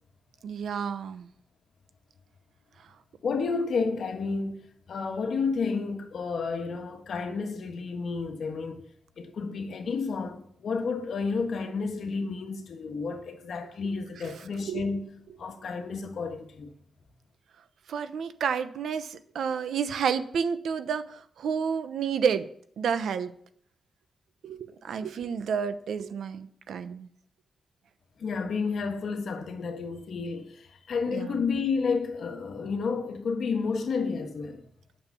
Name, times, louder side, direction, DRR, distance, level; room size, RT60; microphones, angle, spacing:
voice 1, 0.4-1.3 14.7-14.8 17.9-22.5 22.8-23.3 24.4-27.1 31.1-31.4, right 7 dB, 70° right, 0.9 m, -30 dB
voice 2, 3.2-8.8 9.2-15.1 15.4-16.7 28.2-34.7, left 4 dB, 60° left, 1.5 m, -31 dB
9.0 x 6.6 x 7.1 m
wide cardioid pair, 140°, 0 cm